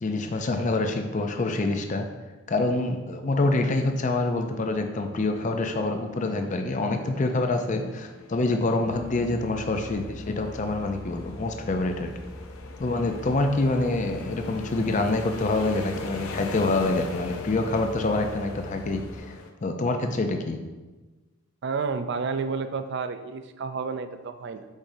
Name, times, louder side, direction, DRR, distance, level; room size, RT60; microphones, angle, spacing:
voice 1, 0.0-2.1 2.5-12.1 12.8-19.0 19.3-19.4 19.6-20.6, left 2 dB, 35° left, 5 dB, 0.4 m, -26 dB
sound 1, 3.7-19.5, left 3 dB, 75° left, 0.6 m, -42 dB
sound 2, 8.8-19.2, equal, 50° left, 0.9 m, -43 dB
voice 2, 21.6-24.7, right 5 dB, 50° right, 9 dB, 0.4 m, -30 dB
7.2 x 5.0 x 2.7 m, 1.2 s
head